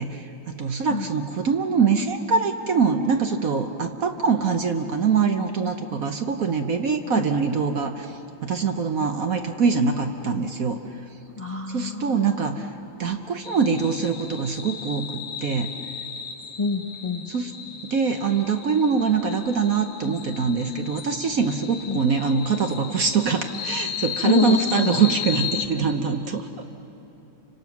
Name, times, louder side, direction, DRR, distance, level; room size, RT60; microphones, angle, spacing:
voice 1, 0.0-10.8 11.7-12.7 13.0-15.7 17.3-17.5 17.8-26.6, right 5 dB, 55° right, 6 dB, 1.1 m, -24 dB
voice 2, 11.4-12.7 16.6-17.2 21.9-22.0 24.2-25.0, left 3 dB, 30° left, 3 dB, 0.6 m, -26 dB
sound 1, 13.4-25.7, left 8 dB, 80° left, 2.0 m, -35 dB
30.0 x 26.0 x 6.0 m, 3.0 s
omnidirectional pair, 2.2 m